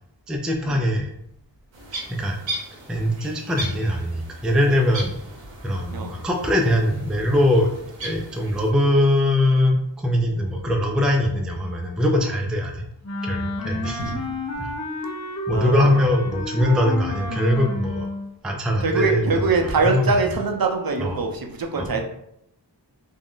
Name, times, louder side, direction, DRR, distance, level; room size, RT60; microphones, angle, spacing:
voice 1, 0.3-1.1 2.1-2.4 2.9-5.1 5.6-7.7 8.0-12.8 13.2-14.1 14.6-14.7 15.5-18.1 18.4-20.1 21.0-21.2 21.8-22.0, left 1 dB, ahead, 2 dB, 0.4 m, -22 dB
sound 1, 1.7-8.7, right 1 dB, 75° right, 0.9 m, -37 dB
Wind instrument woodwind instrument, 13.0-18.3, left 2 dB, 35° left, 0.7 m, -30 dB
voice 2, 13.6-14.4 15.5-16.0 18.8-22.0, right 4 dB, 50° right, 3 dB, 0.5 m, -24 dB
2.5 x 2.1 x 3.6 m, 0.77 s
cardioid pair, 45°, 45 cm